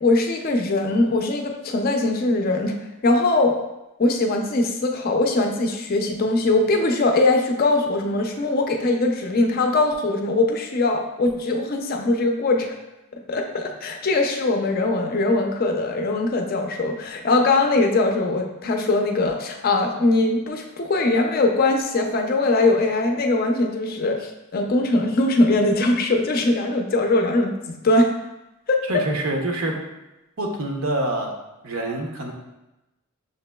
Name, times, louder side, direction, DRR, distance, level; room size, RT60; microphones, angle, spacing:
voice 1, 0.0-2.8 3.0-3.6 4.0-12.8 13.3-28.1 28.7-28.8, left 2 dB, 45° left, 3 dB, 0.4 m, -21 dB
voice 2, 28.9-29.8 30.4-31.3 31.6-32.3, right 1 dB, 75° right, 1 dB, 0.7 m, -26 dB
6.4 x 2.9 x 2.2 m, 0.97 s
head